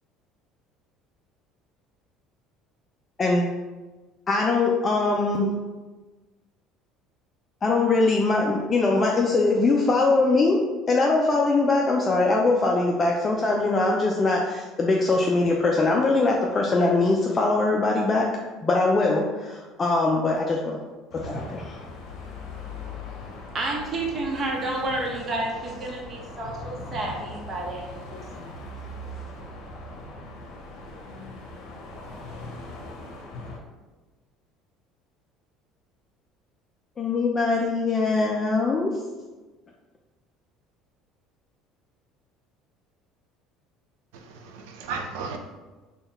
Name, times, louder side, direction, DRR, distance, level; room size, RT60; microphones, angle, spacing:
voice 1, 3.2-3.5 4.3-5.5 7.6-10.6 10.9-18.3 18.6-20.8 21.1-21.8 37.0-38.9, left 3 dB, 30° left, 0.4 m, -22 dB
sound 1, 21.1-33.6, left 2 dB, 65° left, 0.8 m, -40 dB
voice 2, 23.5-28.5, right 2 dB, 35° right, 0.9 m, -30 dB
voice 3, 44.1-45.4, right 5 dB, 90° right, 0.5 m, -35 dB
3.6 x 2.3 x 4.1 m
supercardioid pair, 110°, 0 cm